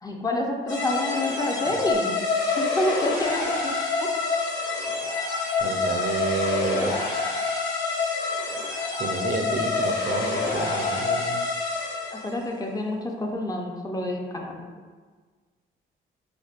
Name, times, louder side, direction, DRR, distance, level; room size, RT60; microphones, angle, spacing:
voice 1, 0.0-2.2 2.6-4.4 12.1-14.6, left 1 dB, 20° left, 1 dB, 0.4 m, -28 dB
sound 1, 0.7-12.4, left 3 dB, 80° left, 1.2 m, -27 dB
voice 2, 5.6-6.9 9.0-11.4, right 4 dB, 50° right, 4 dB, 0.5 m, -30 dB
4.4 x 2.5 x 2.4 m, 1.5 s
cardioid pair, 90°, 20 cm